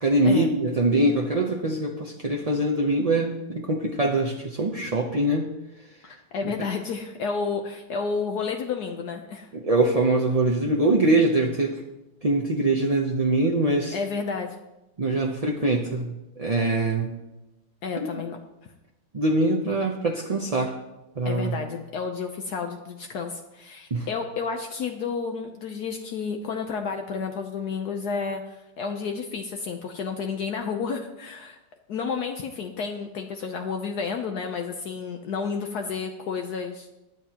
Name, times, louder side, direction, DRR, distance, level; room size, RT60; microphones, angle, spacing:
voice 1, 0.0-5.5 6.4-6.5 9.5-11.8 12.2-14.0 15.0-17.1 18.0-18.1 19.1-20.7 21.2-21.5 23.9-24.1, right 2 dB, 35° right, 0 dB, 0.6 m, -23 dB
voice 2, 6.0-9.5 13.9-14.6 17.8-18.4 21.2-31.6 31.9-36.9, left 5 dB, 70° left, 4 dB, 1.4 m, -31 dB
21.0 x 9.5 x 3.0 m, 0.96 s
omnidirectional pair, 1.8 m